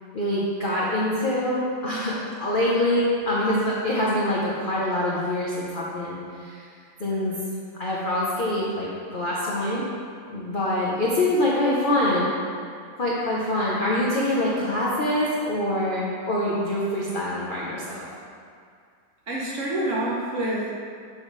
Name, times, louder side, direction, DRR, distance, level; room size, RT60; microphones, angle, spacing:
voice 1, 0.1-6.6 7.0-7.4 7.7-9.8 10.3-12.3 13.0-18.1, left 1 dB, 85° left, -6 dB, 0.4 m, -25 dB
voice 2, 19.3-20.7, right 1 dB, 50° right, -5 dB, 1.0 m, -27 dB
7.0 x 5.5 x 3.2 m, 2.2 s
omnidirectional pair, 2.1 m